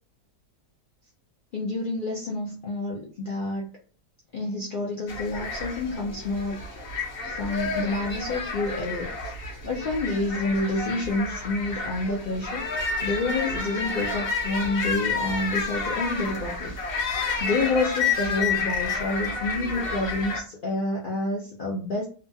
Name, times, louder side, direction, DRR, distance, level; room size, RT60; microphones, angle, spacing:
voice 1, 1.5-3.7 4.3-6.6 7.2-9.3 9.6-12.7 13.0-16.8 17.4-22.1, left 2 dB, 90° left, -2 dB, 0.4 m, -28 dB
sound 1, 5.1-20.4, left 4 dB, 50° left, 0.7 m, -30 dB
2.9 x 2.2 x 2.6 m, 0.39 s
omnidirectional pair, 1.6 m